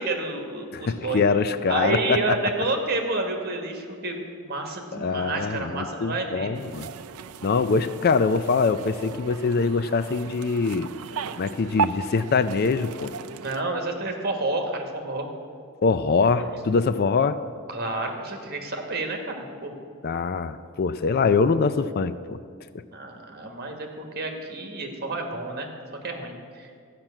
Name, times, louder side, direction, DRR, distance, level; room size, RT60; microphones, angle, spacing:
voice 1, 0.0-1.2 1.7-6.6 13.4-15.3 16.4-16.7 17.7-19.8 22.9-26.7, right 2 dB, 45° right, 3 dB, 1.6 m, -30 dB
voice 2, 0.7-2.2 4.9-6.9 7.4-10.9 11.4-13.1 15.8-17.4 20.0-22.4 22.7-22.8, left 4 dB, 45° left, 13 dB, 0.4 m, -23 dB
sound 1, 6.5-13.6, right 5 dB, 90° right, 0.5 m, -35 dB
13.5 x 5.9 x 8.8 m, 2.2 s
head